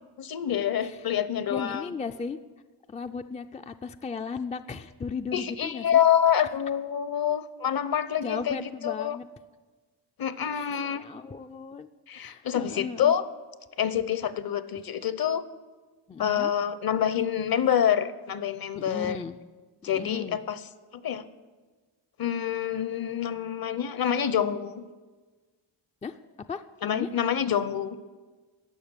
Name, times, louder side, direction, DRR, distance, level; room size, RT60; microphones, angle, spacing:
voice 1, 0.2-1.9 5.3-9.2 10.2-11.0 12.1-13.3 13.8-15.4 16.2-19.2 19.8-20.6 20.9-21.3 22.2-24.9 26.8-28.0, left 9 dB, 45° left, 15 dB, 0.8 m, -27 dB
voice 2, 1.5-2.4 2.9-6.0 6.4-6.5 8.2-9.3 10.5-11.9 12.1-13.2 16.1-16.5 18.8-19.4 19.9-20.4 26.0-26.2 26.5-27.1, left 5 dB, 15° left, 8 dB, 0.3 m, -36 dB
12.5 x 6.7 x 9.7 m, 1.3 s
cardioid pair, 95°, 48 cm